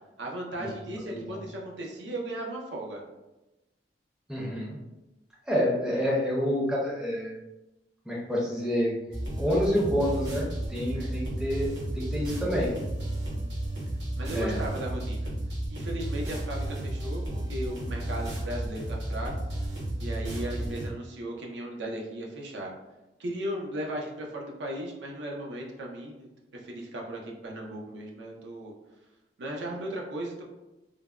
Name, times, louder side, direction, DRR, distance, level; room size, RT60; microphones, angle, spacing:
voice 1, 0.2-3.0 10.9-11.1 14.2-15.3 15.7-19.3 20.0-22.7 23.2-28.7 29.4-30.4, right 1 dB, 80° right, -1 dB, 0.5 m, -36 dB
voice 2, 1.1-1.4 4.3-4.8 5.5-7.3 8.1-8.9 9.4-12.7 14.3-14.6 20.5-20.7, equal, 5° right, -5 dB, 0.5 m, -28 dB
sound 1, 9.1-20.9, right 1 dB, 65° right, 0.9 m, -33 dB
3.2 x 2.0 x 2.3 m, 1.0 s
head